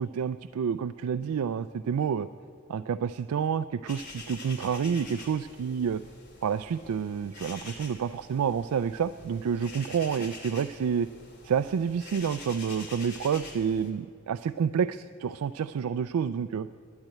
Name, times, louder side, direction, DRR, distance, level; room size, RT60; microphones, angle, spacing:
voice 1, 0.0-2.3 2.7-6.0 6.4-11.1 11.4-16.7, right 7 dB, 90° right, 11 dB, 0.3 m, -29 dB
sound 1, 3.9-13.9, left 3 dB, 50° left, 2.5 m, -46 dB
12.0 x 10.0 x 9.1 m, 2.2 s
head